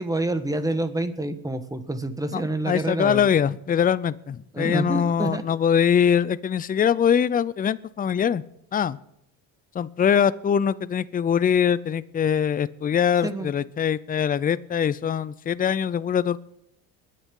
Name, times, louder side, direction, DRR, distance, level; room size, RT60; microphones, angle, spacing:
voice 1, 0.0-3.3 4.5-5.4 13.2-13.5, right 2 dB, 10° right, 10 dB, 1.4 m, -27 dB
voice 2, 2.3-8.4 8.7-9.0 9.7-16.4, left 8 dB, 20° left, 16 dB, 0.5 m, -23 dB
21.5 x 10.0 x 3.8 m, 0.76 s
supercardioid pair, 95°, 39 cm